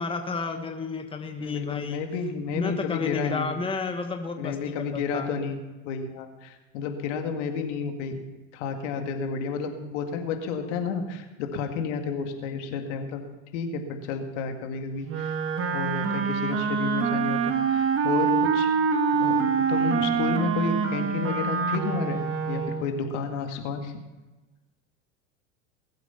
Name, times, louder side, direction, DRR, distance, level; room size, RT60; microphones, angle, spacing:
voice 1, 0.0-2.0 2.5-5.4, left 4 dB, 15° left, 6 dB, 1.3 m, -31 dB
voice 2, 1.4-3.5 4.4-5.6 5.8-8.2 8.5-13.2 13.5-15.4 15.7-18.7 19.1-23.9, left 5 dB, 65° left, 5 dB, 2.3 m, -31 dB
Wind instrument woodwind instrument, 15.1-22.9, right 5 dB, 35° right, 1.9 m, -25 dB
20.5 x 8.1 x 5.8 m, 1.2 s
hypercardioid pair, 95°, 38 cm